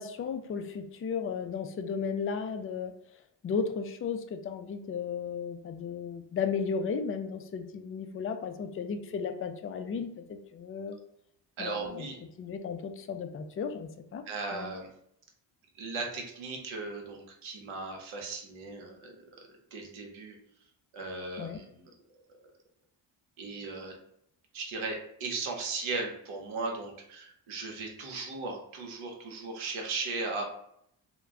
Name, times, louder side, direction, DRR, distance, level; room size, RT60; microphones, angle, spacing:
voice 1, 0.0-2.9 3.4-11.0 11.6-12.1 12.4-14.2 14.5-14.7 21.4-21.6, left 6 dB, 30° left, 7 dB, 0.4 m, -34 dB
voice 2, 11.6-12.2 14.2-14.9 15.8-20.4 20.9-22.2 23.4-23.9 24.5-30.4, right 3 dB, 80° right, 1 dB, 0.9 m, -37 dB
2.2 x 2.2 x 3.6 m, 0.73 s
supercardioid pair, 60°, 48 cm